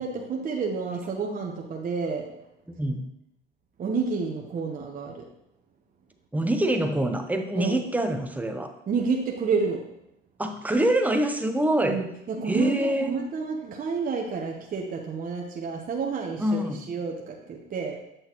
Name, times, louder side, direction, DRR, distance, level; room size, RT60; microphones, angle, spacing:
voice 1, 0.0-2.3 3.8-5.3 7.5-7.8 8.9-9.9 11.8-18.0, right 5 dB, 40° right, 0 dB, 1.0 m, -30 dB
voice 2, 2.7-3.0 6.3-8.7 10.4-12.0 12.5-13.1 16.4-16.8, right 1 dB, 5° right, 5 dB, 0.8 m, -25 dB
7.8 x 6.3 x 3.0 m, 0.81 s
supercardioid pair, 85°, 21 cm